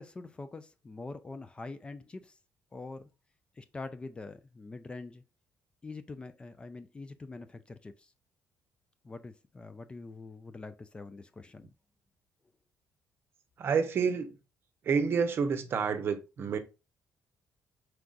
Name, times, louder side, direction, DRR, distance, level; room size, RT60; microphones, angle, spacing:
voice 1, 0.0-2.4 2.7-3.1 3.6-5.2 5.8-8.1 9.0-11.7, left 3 dB, 20° left, 0.4 m, -44 dB
voice 2, 13.6-14.4 14.8-16.6, right 6 dB, 50° right, 0.7 m, -29 dB
4.6 x 3.8 x 2.4 m
cardioid pair, 115°, 5 cm